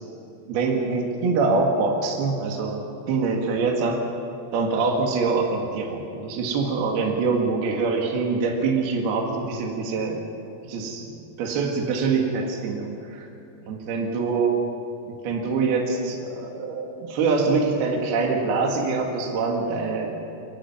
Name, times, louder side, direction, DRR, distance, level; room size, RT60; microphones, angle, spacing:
voice 1, 0.5-2.8 3.1-4.0 4.5-10.3 10.6-13.3 13.7-14.6 15.1-20.2, right 4 dB, 65° right, 1 dB, 3.8 m, -24 dB
29.0 x 11.5 x 9.5 m, 2.6 s
omnidirectional pair, 4.9 m